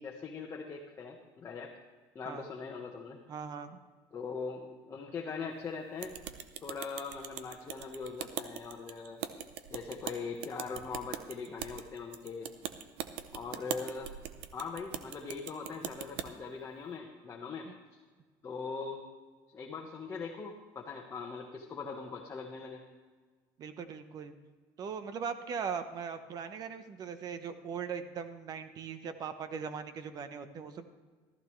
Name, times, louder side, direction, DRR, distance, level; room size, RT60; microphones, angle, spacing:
voice 1, 0.0-1.7 2.1-3.2 4.1-6.2 6.6-9.2 9.7-12.5 13.3-14.1 14.5-17.7 18.4-19.0 19.5-22.8, left 5 dB, 30° left, -1 dB, 1.3 m, -41 dB
voice 2, 3.3-3.8 17.7-17.8 23.6-24.3 24.8-30.9, right 6 dB, 45° right, 10 dB, 1.0 m, -39 dB
sound 1, 6.0-16.3, right 10 dB, 80° right, 0.8 m, -42 dB
14.5 x 14.0 x 3.3 m, 1.4 s
cardioid pair, 125°, 9 cm